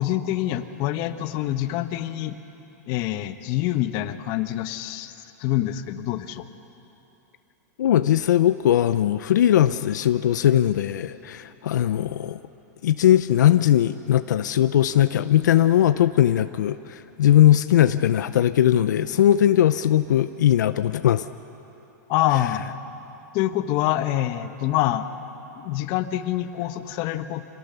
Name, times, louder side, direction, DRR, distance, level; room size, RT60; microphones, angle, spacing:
voice 1, 0.0-2.4 2.9-5.1 5.4-6.4 22.1-22.7 23.3-25.1 25.6-27.4, left 13 dB, 45° left, 10 dB, 1.1 m, -26 dB
voice 2, 7.8-12.4 12.8-21.2, left 11 dB, 90° left, 12 dB, 0.6 m, -19 dB
26.5 x 17.5 x 6.9 m, 2.9 s
supercardioid pair, 135°, 9 cm